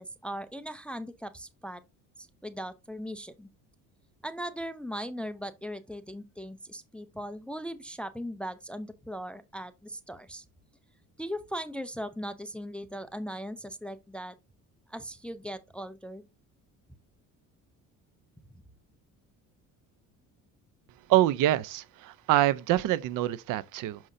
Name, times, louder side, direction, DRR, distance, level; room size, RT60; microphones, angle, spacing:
voice 1, 0.0-1.8 2.2-3.5 4.2-10.4 11.2-14.3 14.9-16.2, equal, 5° left, 0.5 m, -39 dB
voice 2, 21.1-24.0, right 14 dB, 65° right, 0.6 m, -25 dB
6.3 x 5.7 x 2.6 m
cardioid pair, 115°, 34 cm